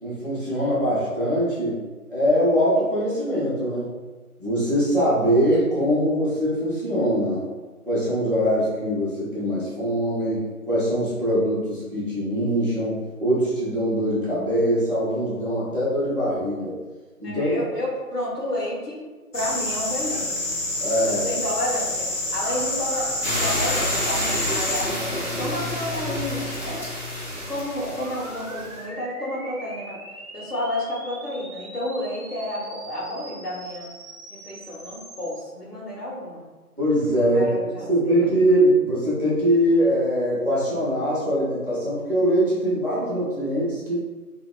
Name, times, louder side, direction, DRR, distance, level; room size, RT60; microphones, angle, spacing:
voice 1, 0.0-1.8 2.1-3.9 4.4-7.4 7.9-16.8 17.2-17.6 20.8-21.3 27.8-28.0 36.8-37.6 37.9-44.0, equal, 35° right, -10 dB, 0.8 m, -22 dB
voice 2, 17.2-19.0 19.3-20.4 21.0-26.9 27.5-30.0 30.3-33.9 34.3-36.4 37.3-38.2, left 1 dB, 90° left, -5 dB, 1.2 m, -31 dB
sound 1, 19.3-24.9, left 2 dB, 60° left, 0.6 m, -27 dB
sound 2, 23.2-28.8, left 1 dB, 35° left, 1.1 m, -29 dB
sound 3, 28.0-35.4, right 2 dB, 70° right, 0.6 m, -42 dB
2.8 x 2.0 x 2.3 m, 1.3 s
figure-of-eight pair, 170°, 45 cm